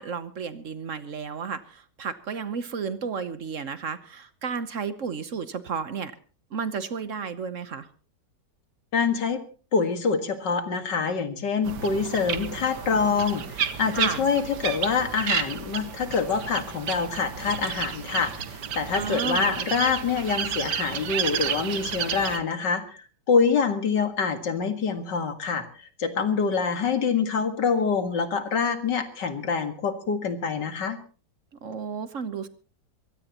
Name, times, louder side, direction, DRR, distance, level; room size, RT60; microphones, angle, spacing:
voice 1, 0.0-6.1 6.5-7.9 13.9-14.3 19.0-19.5 31.6-32.5, right 6 dB, 50° right, 12 dB, 1.2 m, -32 dB
voice 2, 8.9-9.4 9.7-18.3 18.7-23.0 23.3-31.0, left 5 dB, 90° left, 8 dB, 2.5 m, -25 dB
sound 1, 11.6-22.4, right 8 dB, 75° right, 1.8 m, -31 dB
23.5 x 17.0 x 3.0 m, 0.38 s
omnidirectional pair, 1.8 m